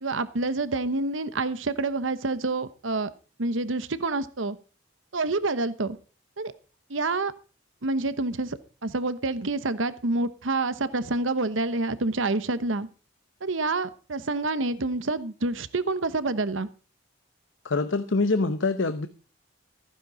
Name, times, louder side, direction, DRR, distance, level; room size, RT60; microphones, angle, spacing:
voice 1, 0.0-3.1 3.4-4.6 5.1-6.0 6.4-6.5 6.9-7.3 7.8-12.9 13.4-16.7, right 3 dB, 85° right, 14 dB, 1.1 m, -27 dB
voice 2, 17.6-19.1, left 3 dB, 80° left, 11 dB, 0.9 m, -25 dB
15.0 x 9.9 x 4.9 m, 0.36 s
head